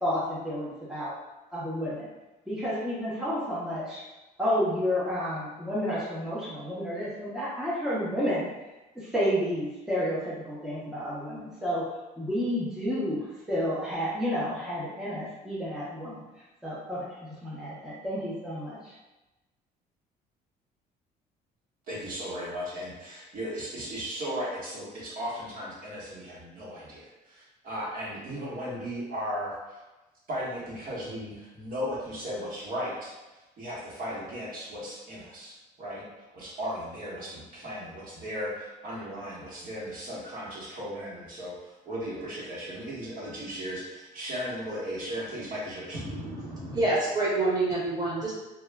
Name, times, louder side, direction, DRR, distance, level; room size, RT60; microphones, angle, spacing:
voice 1, 0.0-1.1 1.5-2.1 2.5-4.0 4.4-8.5 9.0-11.8 12.2-16.2 16.6-18.9, equal, 5° right, -8 dB, 0.6 m, -30 dB
voice 2, 21.9-29.8 30.3-46.0, equal, 55° right, -7 dB, 1.1 m, -36 dB
voice 3, 46.0-48.3, right 2 dB, 25° right, -6 dB, 1.0 m, -27 dB
2.2 x 2.0 x 3.3 m, 1.1 s
cardioid pair, 110°, 17 cm